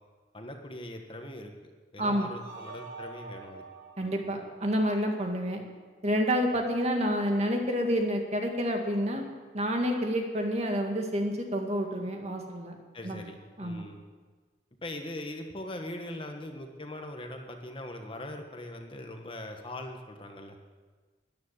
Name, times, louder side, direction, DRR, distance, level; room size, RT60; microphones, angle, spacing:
voice 1, 0.3-1.5 1.9-3.6 4.0-4.2 12.9-14.0 14.8-20.6, left 1 dB, 30° left, 4 dB, 1.4 m, -41 dB
voice 2, 2.0-2.3 4.0-5.6 6.0-9.2 9.5-12.8 13.0-13.2 13.6-13.9, equal, 40° right, 3 dB, 2.0 m, -29 dB
sound 1, 2.4-5.5, right 4 dB, 65° right, 5.2 m, -47 dB
13.5 x 10.5 x 8.8 m, 1.4 s
head